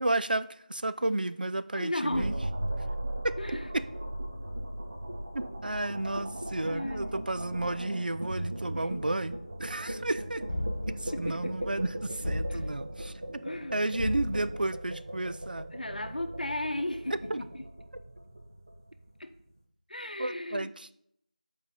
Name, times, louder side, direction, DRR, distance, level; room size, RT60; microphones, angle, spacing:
voice 1, 0.0-2.3 3.2-3.8 5.3-10.4 11.0-13.4 13.7-15.7 17.3-17.4 20.2-20.9, right 2 dB, 85° right, 13 dB, 0.4 m, -32 dB
voice 2, 1.7-2.3 3.4-3.7 6.6-7.3 8.7-9.0 11.1-11.7 12.5-12.7 13.4-13.8 14.2-14.4 15.7-17.6 19.2-19.3 19.9-20.7, left 1 dB, 75° left, 8 dB, 0.9 m, -35 dB
sound 1, 2.1-19.4, right 1 dB, 25° right, 0.4 m, -38 dB
sound 2, 10.5-11.2 12.2-13.0 14.0-14.7, left 1 dB, 50° left, 1.7 m, -34 dB
6.0 x 4.4 x 5.2 m, 0.72 s
figure-of-eight pair, 175°, 5 cm